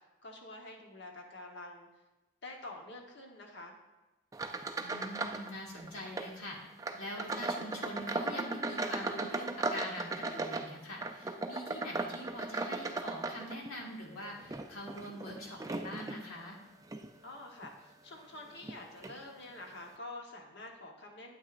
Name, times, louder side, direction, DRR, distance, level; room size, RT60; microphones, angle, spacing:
voice 1, 0.2-1.9 2.4-3.8 17.2-21.4, left 2 dB, 55° left, 1 dB, 1.1 m, -47 dB
sound 1, 4.3-5.5 5.7-6.3 6.8-13.9 14.4-16.2 16.8-17.1 17.6-17.7 18.6-18.7 19.0-19.2, right 3 dB, 15° right, 0.3 m, -37 dB
voice 2, 4.8-6.6 7.0-16.6, left 1 dB, 85° left, -2 dB, 1.8 m, -44 dB
9.0 x 8.4 x 2.5 m, 1.1 s
head